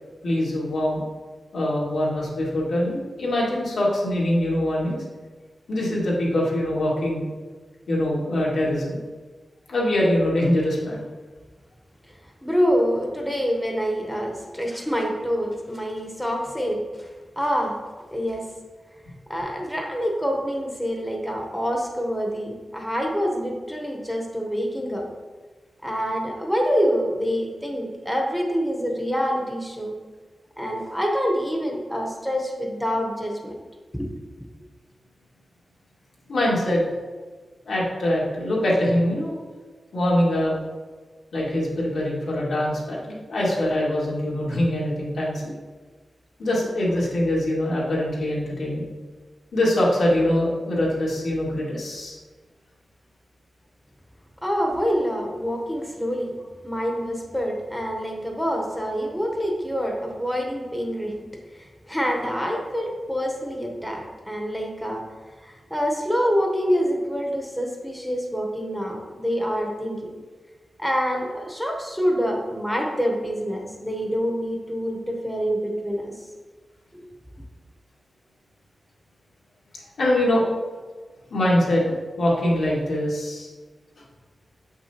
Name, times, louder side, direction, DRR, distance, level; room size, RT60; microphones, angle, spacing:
voice 1, 0.2-1.0 1.5-5.0 5.7-7.2 7.9-9.0 9.7-11.0 36.3-36.9 37.7-39.3 39.9-40.5 41.3-45.4 46.4-48.9 49.5-52.2 79.7-80.4 81.3-81.9 82.2-83.5, left 1 dB, 80° left, -5 dB, 1.9 m, -23 dB
voice 2, 12.4-17.1 17.4-17.8 18.1-18.5 19.3-25.1 25.8-29.9 30.6-33.5 33.9-34.1 54.4-56.3 56.6-61.1 61.5-65.0 65.4-70.1 70.8-76.3 76.9-77.0, equal, 5° left, 0 dB, 0.8 m, -26 dB
6.6 x 5.9 x 2.8 m, 1.4 s
wide cardioid pair, 105°, 0 cm